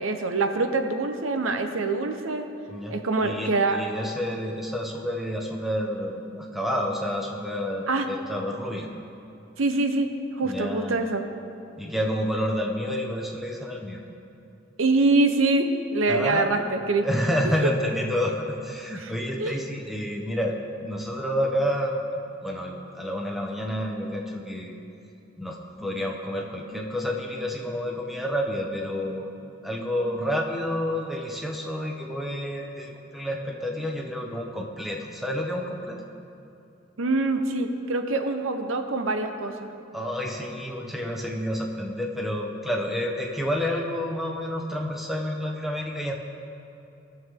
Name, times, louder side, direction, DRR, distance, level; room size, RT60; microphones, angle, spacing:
voice 1, 0.0-2.4 2.9-3.8 7.9-8.1 9.6-11.2 14.8-17.0 19.0-19.1 19.4-19.6 37.0-39.7, right 3 dB, 90° right, 7 dB, 0.8 m, -24 dB
voice 2, 2.7-8.9 10.4-11.0 11.8-14.0 16.1-16.6 17.0-20.5 20.8-21.9 22.4-24.7 25.4-29.3 29.6-36.0 39.9-46.1, equal, ahead, 0 dB, 0.9 m, -29 dB
19.0 x 7.1 x 3.7 m, 2.8 s
head